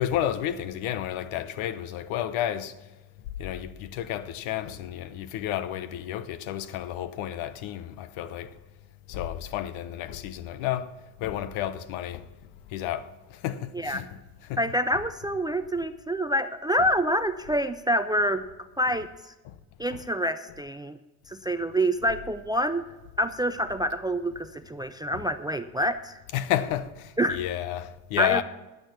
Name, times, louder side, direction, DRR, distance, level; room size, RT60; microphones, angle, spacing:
voice 1, 0.0-2.8 3.4-8.6 9.1-10.9 11.2-12.3 12.7-14.8 16.8-16.9 18.9-19.0 19.4-19.6 19.9-20.0 25.1-25.3 26.3-28.4, left 11 dB, 75° left, 0.9 m, -31 dB
voice 2, 14.6-18.4 18.8-19.3 19.8-21.0 21.3-22.8 23.2-26.1 27.2-27.4 28.2-28.4, equal, 10° right, 0.3 m, -27 dB
11.0 x 8.9 x 5.8 m
supercardioid pair, 80°, 49 cm